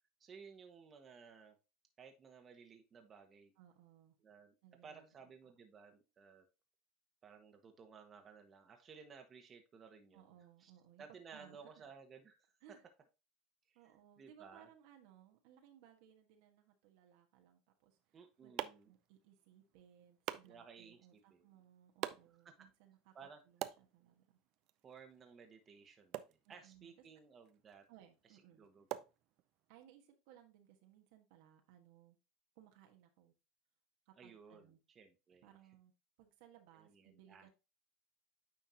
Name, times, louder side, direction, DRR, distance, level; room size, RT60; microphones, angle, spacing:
voice 1, 0.2-1.5 2.0-3.5 4.2-4.5 4.8-6.5 7.2-10.3 10.6-10.7 11.0-12.5 13.7-14.7 18.1-18.9 20.5-21.5 23.1-23.4 24.8-27.8 28.6-29.1 34.2-35.5 36.7-37.5, right 6 dB, 30° right, 1.3 m, -57 dB
voice 2, 3.6-4.2 4.6-5.1 5.4-5.5 10.1-11.9 12.6-12.8 13.7-18.5 18.8-23.1 23.4-24.4 26.4-26.9 27.9-28.7 29.7-32.2 32.5-33.3 34.0-34.8 35.4-35.9 36.2-37.5, right 10 dB, 70° right, 1.4 m, -64 dB
sound 1, 17.9-29.8, right 14 dB, 55° right, 0.5 m, -50 dB
9.2 x 4.6 x 2.8 m
supercardioid pair, 110°, 0 cm